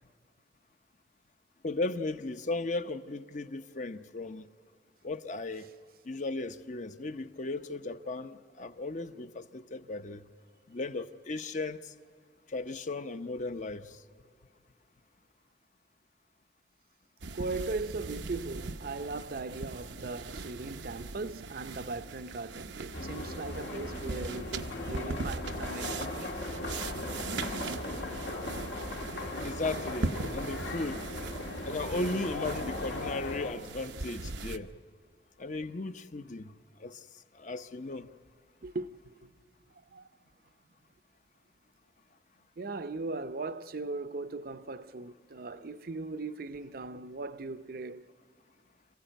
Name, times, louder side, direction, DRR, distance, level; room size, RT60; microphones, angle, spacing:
voice 1, 1.6-4.5 5.0-5.7 6.1-10.2 10.7-11.9 12.5-14.0 27.4-27.6 29.4-31.0 31.6-34.7 35.4-36.5 36.8-37.0 37.3-38.1, left 2 dB, 45° left, 0.8 m, -36 dB
sound 1, 17.2-34.6, right 3 dB, 85° right, 0.8 m, -40 dB
voice 2, 17.3-26.3 38.6-39.3 39.9-40.0 42.6-48.1, right 3 dB, 55° right, 0.7 m, -38 dB
sound 2, 22.9-33.5, left 2 dB, 80° left, 2.1 m, -38 dB
27.5 x 15.5 x 9.2 m
head